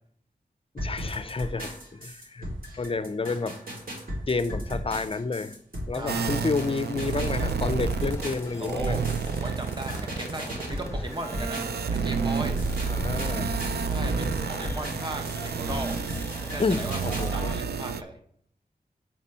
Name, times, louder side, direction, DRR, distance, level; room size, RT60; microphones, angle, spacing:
voice 1, 0.7-2.5 2.7-3.6 4.3-5.6 5.9-9.0 12.8-13.5 16.6-17.5, left 4 dB, 35° left, 0.5 m, -30 dB
sound 1, 0.8-12.0 12.3-17.3, equal, 60° right, 2.2 m, -36 dB
voice 2, 5.9-6.7 8.6-12.6 13.8-16.0 16.4-17.0 17.3-18.2, right 1 dB, 30° right, 1.0 m, -37 dB
sound 2, 6.1-17.6, left 1 dB, 15° left, 1.0 m, -43 dB
sound 3, 6.1-8.4 8.7-18.0, right 5 dB, 80° right, 0.4 m, -30 dB
7.4 x 4.2 x 5.4 m
wide cardioid pair, 70°, 16 cm